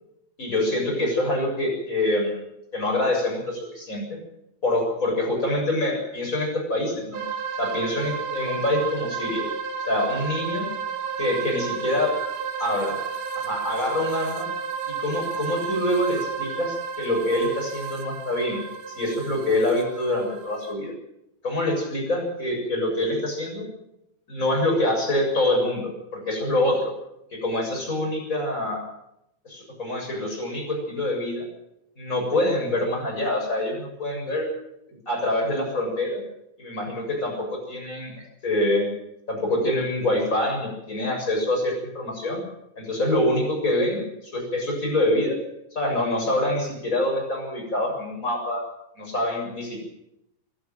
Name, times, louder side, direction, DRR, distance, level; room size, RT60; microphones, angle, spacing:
voice 1, 0.4-2.4 2.7-4.2 4.6-7.2 7.6-9.5 9.9-10.7 11.2-12.1 12.6-13.0 13.4-14.5 14.9-20.9 21.4-23.7 24.3-26.9 27.3-28.8 29.4-31.5 32.0-34.5 34.9-36.2 36.6-38.1 38.4-38.9 39.3-42.4 42.8-45.4 45.7-48.6 49.0-49.8, left 1 dB, 15° left, 1 dB, 7.3 m, -25 dB
sound 1, 7.1-20.7, right 6 dB, 65° right, 3.7 m, -32 dB
26.0 x 11.5 x 9.0 m, 0.83 s
omnidirectional pair, 5.2 m